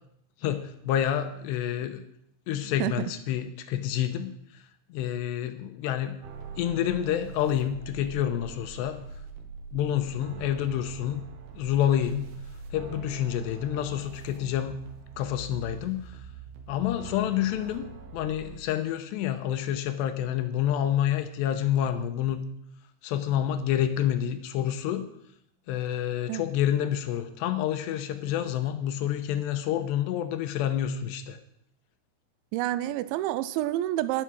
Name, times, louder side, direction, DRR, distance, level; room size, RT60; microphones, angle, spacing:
voice 1, 0.4-2.0 2.5-4.3 4.9-6.2 6.6-9.0 9.7-11.2 11.5-12.2 12.7-14.8 15.2-16.1 16.7-17.9 18.1-22.4 23.0-25.1 25.7-31.4, left 10 dB, 80° left, 2.7 m, -28 dB
voice 2, 2.8-3.1 26.3-26.4 32.5-34.2, right 14 dB, 80° right, 2.8 m, -28 dB
sound 1, 6.2-18.6, right 5 dB, 65° right, 3.0 m, -43 dB
11.0 x 10.0 x 6.2 m
omnidirectional pair, 5.6 m